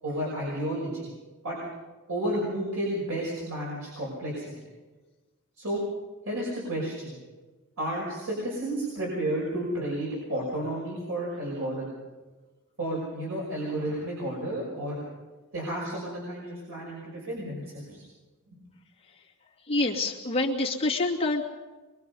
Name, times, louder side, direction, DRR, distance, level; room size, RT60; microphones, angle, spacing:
voice 1, 0.0-1.1 1.4-1.6 2.1-4.7 5.6-5.8 6.2-7.2 7.8-11.9 12.8-15.0 15.5-18.0 18.5-18.6, right 1 dB, 80° right, -4 dB, 6.0 m, -32 dB
voice 2, 19.7-21.4, left 2 dB, 30° left, -2 dB, 2.5 m, -26 dB
24.5 x 23.5 x 5.6 m, 1.3 s
head